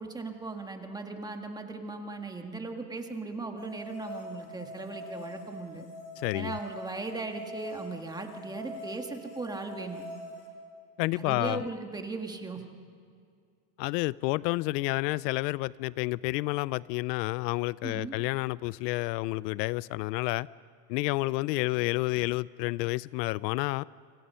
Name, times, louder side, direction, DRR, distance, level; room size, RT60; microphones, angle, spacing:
voice 1, 0.0-5.9 6.3-10.0 11.1-12.6 17.8-18.1, right 3 dB, 10° right, 1.6 m, -38 dB
sound 1, 3.6-10.5, left 1 dB, 55° left, 6.0 m, -43 dB
voice 2, 6.2-6.6 11.0-11.6 13.8-20.5 20.9-23.8, left 20 dB, 80° left, 0.6 m, -30 dB
29.0 x 26.0 x 5.6 m
supercardioid pair, 155°, 49 cm